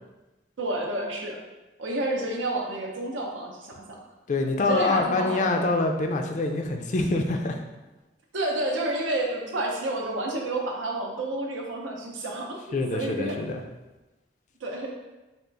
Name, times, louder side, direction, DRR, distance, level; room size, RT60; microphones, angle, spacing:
voice 1, 0.6-1.4 1.8-4.0 4.6-5.5 8.3-13.5 14.6-14.9, right 2 dB, 90° right, 0 dB, 0.7 m, -30 dB
voice 2, 4.3-7.6 12.7-13.6, left 2 dB, 40° left, 4 dB, 0.3 m, -25 dB
3.5 x 2.4 x 3.8 m, 1.1 s
head